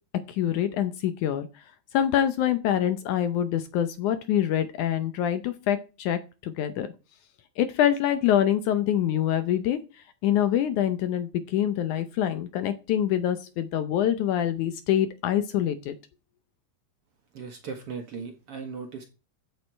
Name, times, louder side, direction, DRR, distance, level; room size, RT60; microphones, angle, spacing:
voice 1, 0.3-1.5 1.9-6.9 7.6-9.8 10.2-16.0, left 10 dB, 70° left, 10 dB, 2.1 m, -25 dB
voice 2, 17.3-19.0, right 5 dB, 50° right, 5 dB, 2.1 m, -37 dB
13.0 x 8.3 x 4.5 m, 0.32 s
omnidirectional pair, 4.0 m